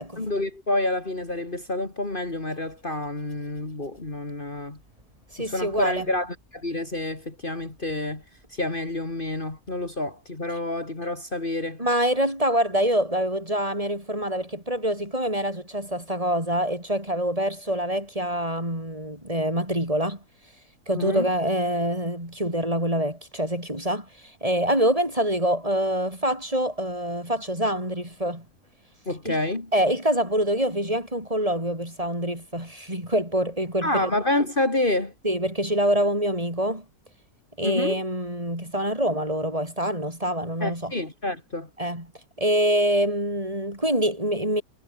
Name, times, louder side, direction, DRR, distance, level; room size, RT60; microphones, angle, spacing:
voice 1, 0.2-4.8 5.4-8.2 8.5-11.8 20.9-21.3 29.1-29.7 33.8-35.1 37.6-38.0 40.6-41.7, left 2 dB, 30° left, 3.2 m, -28 dB
voice 2, 5.3-6.0 11.8-20.2 20.9-28.5 29.3-29.4 29.7-34.1 35.2-36.8 37.6-40.9 41.8-42.1 42.4-44.6, equal, 20° right, 7.0 m, -25 dB
omnidirectional pair, 1.7 m